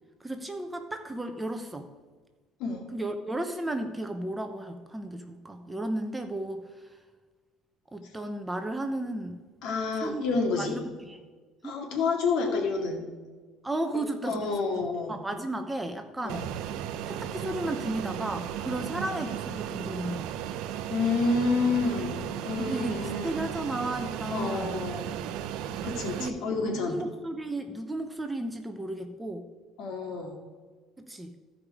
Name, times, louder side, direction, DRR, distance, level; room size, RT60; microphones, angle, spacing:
voice 1, 0.2-1.9 2.9-6.9 7.9-9.4 10.0-10.2 10.6-11.2 11.6-11.8 13.6-14.5 15.1-16.5 17.1-20.4 22.6-24.8 26.2-26.4 26.7-29.5 31.0-31.4, right 1 dB, 10° right, 6 dB, 0.7 m, -34 dB
voice 2, 9.6-10.8 11.6-13.0 14.2-15.2 16.2-16.4 18.9-19.1 20.9-23.4 24.3-25.1 25.8-26.9 29.8-30.4, left 4 dB, 65° left, 2 dB, 2.0 m, -29 dB
Fixed-wing aircraft airplane, 16.3-26.3, right 10 dB, 70° right, 0.6 m, -35 dB
14.5 x 5.0 x 4.8 m, 1.4 s
cardioid pair, 140°, 0 cm